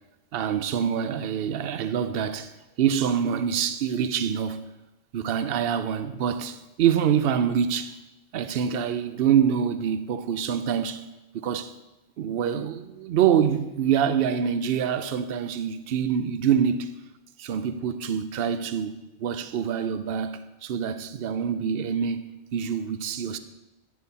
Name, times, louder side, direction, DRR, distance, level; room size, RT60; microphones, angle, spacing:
voice 1, 0.3-2.5 2.8-4.7 5.1-8.0 8.3-11.0 11.4-11.7 12.2-17.0 17.4-23.4, right 8 dB, 65° right, 0.8 m, -25 dB
10.0 x 7.6 x 4.1 m
omnidirectional pair, 1.2 m